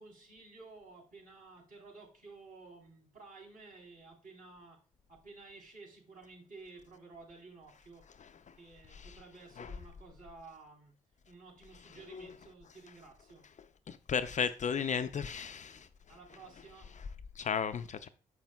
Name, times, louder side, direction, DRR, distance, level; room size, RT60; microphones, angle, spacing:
voice 1, 0.0-4.8 5.1-8.0 8.6-10.9 11.2-13.5 16.1-17.0, right 3 dB, 50° right, 3.5 m, -53 dB
voice 2, 13.9-15.9 17.4-18.1, left 6 dB, 40° left, 0.5 m, -34 dB
6.9 x 6.0 x 2.2 m
hypercardioid pair, 40°, 19 cm